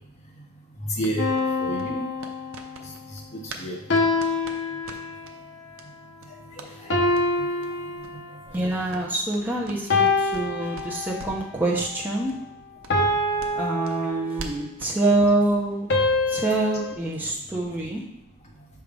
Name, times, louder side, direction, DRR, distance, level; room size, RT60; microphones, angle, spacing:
voice 1, 0.9-1.3 1.6-2.0 3.1-3.8 6.6-7.0 7.4-7.5, right 1 dB, 30° left, -2 dB, 1.2 m, -30 dB
sound 1, 1.0-3.7 3.9-5.4 5.7-5.9 6.2-6.7 7.1-7.3 7.6-7.7 8.0-8.2 8.4-10.5 10.7-11.5 11.8-11.9 12.3-12.4 12.8-15.0, right 3 dB, 65° right, 0.6 m, -43 dB
sound 2, 1.2-2.8 3.9-5.4 6.9-8.6 9.9-11.4 12.9-14.6 15.9-16.9, left 2 dB, 55° left, 0.9 m, -25 dB
voice 2, 8.5-12.3 13.6-15.9 16.3-18.0, right 2 dB, 10° right, -4 dB, 0.9 m, -25 dB
5.7 x 3.5 x 5.2 m, 0.82 s
head